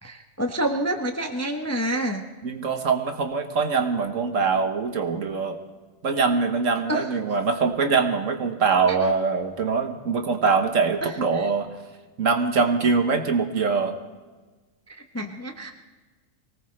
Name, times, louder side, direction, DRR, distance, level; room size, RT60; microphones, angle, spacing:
voice 1, 0.0-2.2 6.9-7.1 8.9-9.1 11.0-11.5 14.9-15.7, right 1 dB, 15° left, 4 dB, 0.7 m, -28 dB
voice 2, 2.4-5.6 6.0-11.7 12.2-13.9, right 5 dB, 60° right, 6 dB, 1.5 m, -23 dB
23.5 x 18.5 x 3.3 m, 1.3 s
omnidirectional pair, 1.6 m